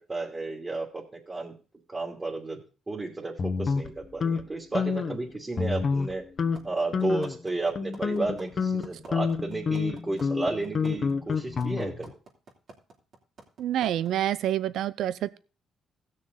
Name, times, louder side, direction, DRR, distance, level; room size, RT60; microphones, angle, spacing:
voice 1, 0.1-1.5 1.9-2.6 2.9-6.2 6.6-12.1, right 2 dB, 30° right, -2 dB, 2.8 m, -32 dB
sound 1, 3.4-4.4 4.7-5.2 5.6-6.1 6.4-6.6 6.9-7.4 7.8-12.1, left 5 dB, 50° left, 1.0 m, -28 dB
sound 2, 6.5-14.3, right 3 dB, 60° right, 3.2 m, -48 dB
voice 2, 13.6-15.4, right 12 dB, 80° right, 17 dB, 0.5 m, -27 dB
16.5 x 6.5 x 4.0 m, 0.36 s
supercardioid pair, 70°, 0 cm